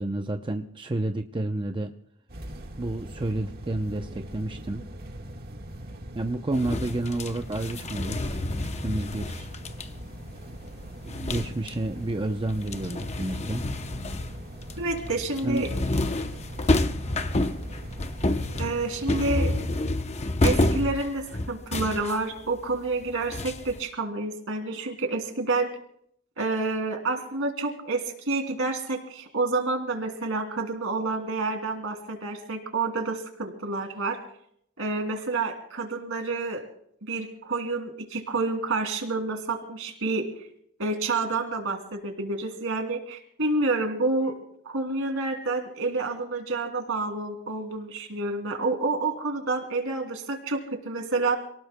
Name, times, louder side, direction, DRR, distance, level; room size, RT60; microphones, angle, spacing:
voice 1, 0.0-1.9 2.8-4.8 6.1-9.5 11.0-13.6 15.4-15.7, right 2 dB, 20° right, 5 dB, 0.6 m, -30 dB
sound 1, 2.3-19.8, right 1 dB, 45° right, 1.6 m, -41 dB
sound 2, 6.5-12.0 12.3-23.8, left 2 dB, 30° left, 0.7 m, -29 dB
voice 2, 14.8-15.7 18.6-19.5 20.4-25.7 26.4-34.2 34.8-36.6 37.1-40.3 40.8-44.4 44.6-51.4, right 3 dB, 65° right, 5 dB, 2.8 m, -29 dB
27.5 x 18.5 x 2.2 m, 0.69 s
head